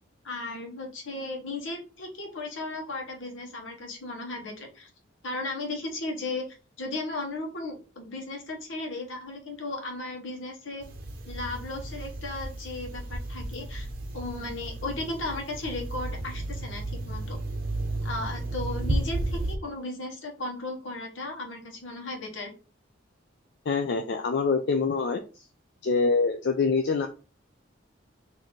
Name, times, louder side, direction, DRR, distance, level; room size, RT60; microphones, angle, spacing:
voice 1, 0.2-4.9 5.2-6.5 6.8-10.8 11.2-13.9 14.1-17.4 18.0-22.5, left 2 dB, 75° left, 1 dB, 1.1 m, -35 dB
sound 1, 10.8-19.6, right 2 dB, 45° right, 0.7 m, -33 dB
voice 2, 23.7-25.5 25.8-27.1, left 4 dB, 55° left, 5 dB, 0.4 m, -25 dB
4.1 x 2.7 x 3.1 m, 0.35 s
head